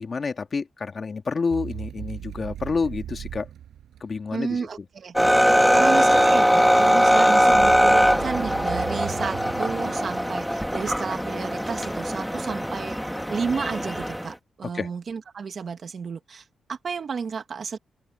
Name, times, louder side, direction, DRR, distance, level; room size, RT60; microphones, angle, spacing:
voice 1, 0.0-3.5 4.0-4.7 14.7-14.9, left 4 dB, 40° left, 2.1 m, -29 dB
sound 1, 1.5-4.5 7.5-10.9, right 10 dB, 90° right, 5.7 m, -37 dB
voice 2, 4.3-5.1 5.7-13.0 13.3-17.8, right 5 dB, 55° right, 1.7 m, -32 dB
sound 2, 5.1-14.3, equal, ahead, 1.6 m, -21 dB
open air
cardioid pair, 90°, 0 cm